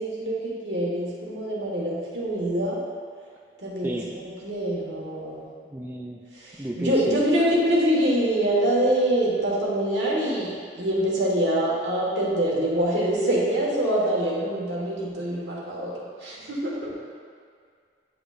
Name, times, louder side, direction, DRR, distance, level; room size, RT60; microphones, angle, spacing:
voice 1, 0.0-2.8 3.6-5.4 6.4-15.9 16.2-16.9, right 1 dB, 75° right, -5 dB, 1.6 m, -25 dB
voice 2, 5.7-6.2 6.6-7.2, right 1 dB, 10° right, -1 dB, 0.3 m, -32 dB
9.8 x 4.9 x 2.5 m, 2.2 s
head